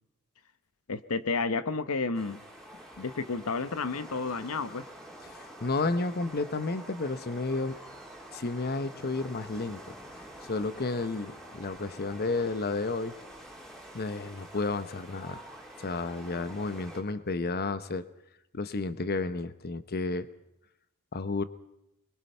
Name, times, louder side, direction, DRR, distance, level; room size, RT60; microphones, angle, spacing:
voice 1, 0.9-2.4 3.0-4.9, left 4 dB, 70° left, 13 dB, 0.9 m, -31 dB
sound 1, 2.1-17.0, right 1 dB, ahead, 3.5 m, -47 dB
voice 2, 5.3-7.8 8.3-9.8 10.5-13.1 13.9-15.5 15.8-18.0 18.5-20.3 21.1-21.4, left 3 dB, 45° left, 13 dB, 0.9 m, -32 dB
25.0 x 22.0 x 5.6 m, 0.82 s
head